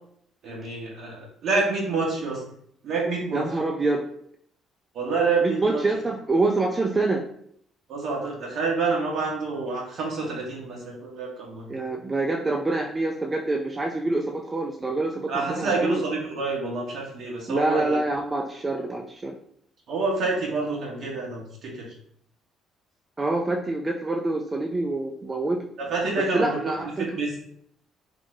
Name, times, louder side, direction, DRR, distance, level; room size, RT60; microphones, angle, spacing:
voice 1, 0.4-2.4 2.8-3.5 4.9-5.8 7.9-11.7 15.3-18.0 19.9-21.9 25.8-26.6 27.0-27.4, right 3 dB, 60° right, -2 dB, 1.1 m, -27 dB
voice 2, 3.3-4.1 5.4-7.2 11.7-16.0 17.5-19.4 23.2-25.6 26.2-27.1, right 2 dB, 30° right, 1 dB, 0.4 m, -26 dB
3.0 x 2.0 x 3.9 m, 0.66 s
hypercardioid pair, 50°, 0 cm